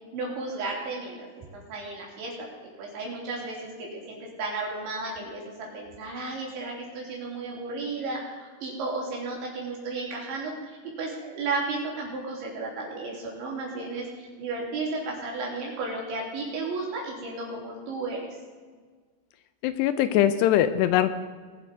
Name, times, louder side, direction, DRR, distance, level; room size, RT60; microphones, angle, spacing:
voice 1, 0.1-1.3 1.7-2.5 2.8-18.2, right 3 dB, 85° right, -3 dB, 6.0 m, -33 dB
voice 2, 19.6-21.1, left 12 dB, 80° left, 12 dB, 2.6 m, -22 dB
21.5 x 7.9 x 5.3 m, 1.5 s
omnidirectional pair, 5.1 m